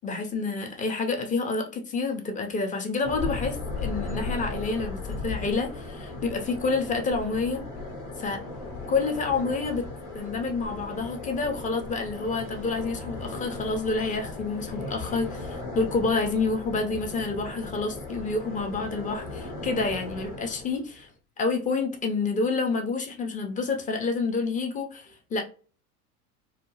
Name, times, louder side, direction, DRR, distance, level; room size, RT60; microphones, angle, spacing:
voice 1, 0.0-7.6 8.2-8.4 8.9-9.9 10.1-21.1 21.4-25.4, left 3 dB, 15° left, 0.6 m, -28 dB
sound 1, 3.0-21.0, left 3 dB, 60° left, 1.2 m, -36 dB
2.4 x 2.3 x 3.1 m
hypercardioid pair, 80°, 45 cm